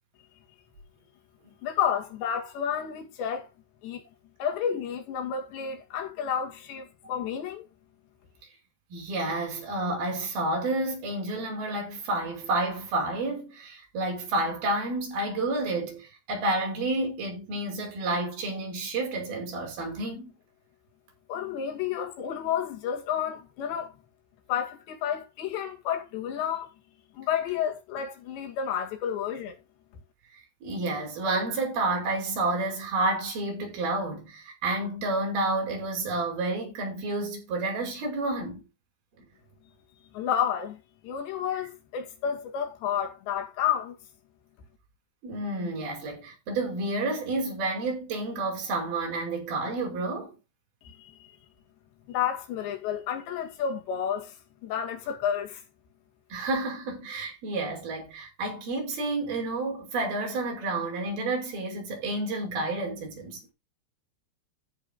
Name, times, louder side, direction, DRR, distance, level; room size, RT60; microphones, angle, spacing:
voice 1, 1.6-3.5 3.8-4.0 4.4-7.7 21.3-23.9 24.5-26.7 27.1-29.6 40.1-40.8 41.0-44.0 50.8-51.1 52.1-54.4 54.6-55.6, left 8 dB, 85° left, 4.5 m, -30 dB
voice 2, 8.9-20.3 30.6-38.7 39.2-39.3 45.2-50.4 56.3-63.4, right 2 dB, 60° right, 7.1 m, -30 dB
14.5 x 5.8 x 3.8 m
omnidirectional pair, 4.9 m